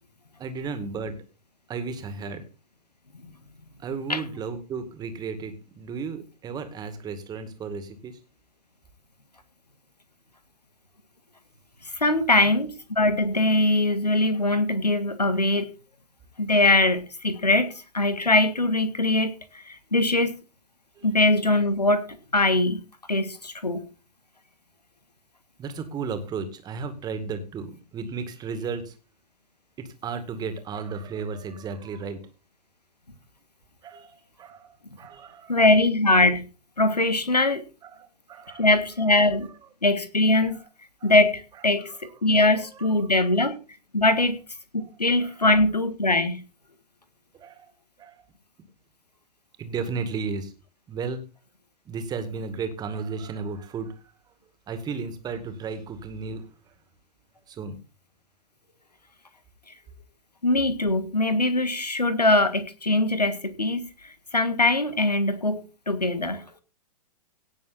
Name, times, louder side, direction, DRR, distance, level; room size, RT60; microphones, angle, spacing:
voice 1, 0.4-1.2 1.7-2.4 3.8-8.2 21.0-21.1 25.6-29.0 29.8-32.2 33.8-35.6 37.8-39.1 39.4-39.7 40.5-40.7 41.0-41.1 41.5-43.3 44.0-44.2 44.8-45.6 47.4-47.7 48.0-48.3 49.6-50.5 50.9-51.2 51.9-54.1 54.7-56.7 57.5-57.8, right 5 dB, 20° right, 9 dB, 2.1 m, -35 dB
voice 2, 11.9-15.7 16.4-19.3 19.7-20.4 21.0-22.1 22.3-22.8 23.1-23.8 35.5-36.4 36.8-37.6 38.6-39.5 39.8-40.6 41.0-41.9 42.2-43.6 43.9-44.4 44.7-46.4 60.4-63.9 64.3-66.4, left 2 dB, 85° left, 12 dB, 1.7 m, -22 dB
17.5 x 7.0 x 4.1 m, 0.33 s
figure-of-eight pair, 110°, 20 cm